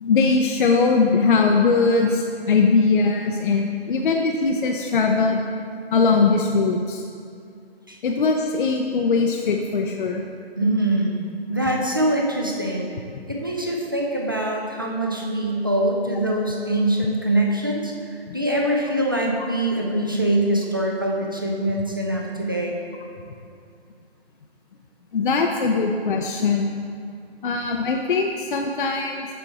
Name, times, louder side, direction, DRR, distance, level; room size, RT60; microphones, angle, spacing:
voice 1, 0.0-5.4 5.9-7.0 8.0-10.2 18.3-18.4 25.1-26.7 27.4-29.3, left 4 dB, 55° left, 2 dB, 0.5 m, -20 dB
voice 2, 10.6-11.2 11.5-12.9 13.3-17.9 18.3-22.7, right 1 dB, 20° right, -1 dB, 0.3 m, -23 dB
7.0 x 4.3 x 4.6 m, 2.3 s
hypercardioid pair, 155°, 32 cm